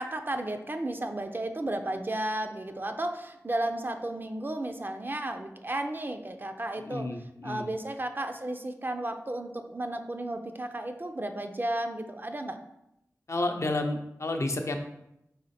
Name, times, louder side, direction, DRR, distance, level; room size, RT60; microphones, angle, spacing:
voice 1, 0.0-7.1 7.4-12.6, right 1 dB, 35° right, 6 dB, 0.4 m, -33 dB
voice 2, 6.8-7.7 13.3-14.8, left 2 dB, 55° left, 4 dB, 0.5 m, -31 dB
4.2 x 3.1 x 4.2 m, 0.83 s
cardioid pair, 40°, 6 cm